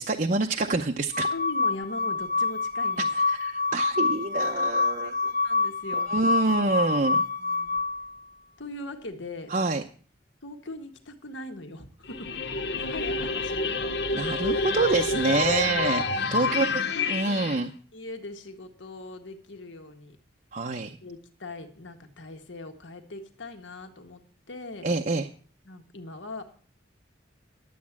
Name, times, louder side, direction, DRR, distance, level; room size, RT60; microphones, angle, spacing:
voice 1, 0.0-1.3 3.3-5.2 6.1-7.2 9.5-9.8 14.1-16.7 17.1-17.7 20.5-21.0 24.8-25.3, right 3 dB, 45° right, 3 dB, 0.7 m, -26 dB
sound 1, 1.1-8.1, left 3 dB, 40° left, 1.4 m, -27 dB
voice 2, 1.3-3.1 5.0-6.1 7.3-7.8 8.6-9.5 10.4-12.4 12.7-13.7 14.8-15.0 16.2-17.6 17.9-20.2 21.0-24.2 24.5-24.9 25.6-26.4, left 2 dB, 80° left, 6 dB, 1.6 m, -41 dB
sound 2, 12.1-17.6, left 4 dB, 60° left, 0.8 m, -28 dB
12.0 x 8.4 x 7.2 m, 0.43 s
head